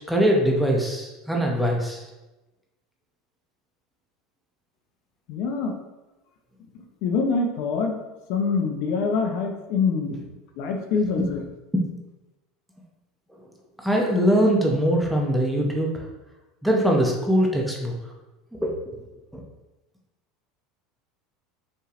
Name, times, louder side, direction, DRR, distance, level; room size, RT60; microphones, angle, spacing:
voice 1, 0.1-2.0 10.1-10.2 11.7-11.8 13.8-16.0 16.6-17.9 18.5-18.7 19.3-19.4, equal, ahead, -1 dB, 0.7 m, -22 dB
voice 2, 5.3-5.7 7.0-7.9 8.3-10.2 10.6-11.4, left 4 dB, 55° left, 3 dB, 0.6 m, -25 dB
5.4 x 3.2 x 2.5 m, 1.0 s
supercardioid pair, 145°, 0 cm